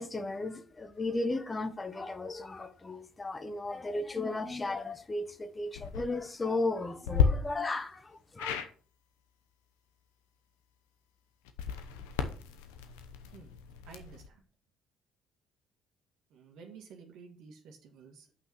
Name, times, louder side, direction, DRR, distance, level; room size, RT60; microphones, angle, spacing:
voice 1, 0.0-8.6, left 2 dB, 25° left, 1.1 m, -35 dB
sound 1, 5.7-6.0 7.0-7.3 8.4-8.7 11.4-14.3, left 7 dB, 85° left, 0.9 m, -32 dB
voice 2, 13.8-14.4 16.3-18.3, right 5 dB, 70° right, 1.7 m, -52 dB
5.8 x 5.8 x 6.1 m
supercardioid pair, 65°, 0 cm